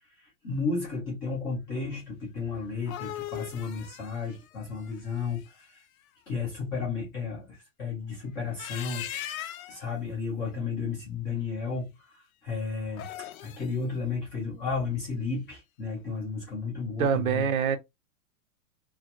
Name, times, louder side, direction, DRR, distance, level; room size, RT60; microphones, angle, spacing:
voice 1, 0.2-5.8 6.3-9.1 9.4-17.5, left 4 dB, 10° left, 0.4 m, -33 dB
sound 1, 2.6-5.7 8.4-9.9 12.8-13.7, left 12 dB, 80° left, 0.5 m, -40 dB
voice 2, 17.0-17.8, right 7 dB, 85° right, 0.7 m, -25 dB
2.4 x 2.2 x 2.7 m
supercardioid pair, 160°, 41 cm